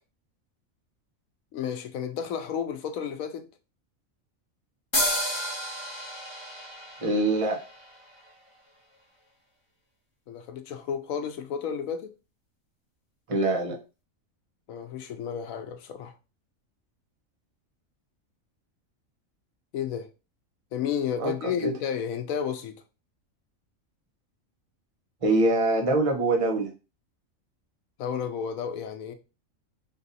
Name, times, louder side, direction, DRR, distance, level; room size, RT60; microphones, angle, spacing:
voice 1, 1.5-3.4 10.3-12.1 14.7-16.1 19.7-20.1 20.7-22.8 28.0-29.1, left 8 dB, 85° left, 1.1 m, -32 dB
sound 1, 4.9-8.5, equal, 20° left, 1.1 m, -31 dB
voice 2, 7.0-7.6 13.3-13.8 21.2-21.3 21.6-21.7 25.2-26.7, right 2 dB, 30° right, 0.9 m, -24 dB
3.8 x 2.6 x 4.0 m
omnidirectional pair, 1.4 m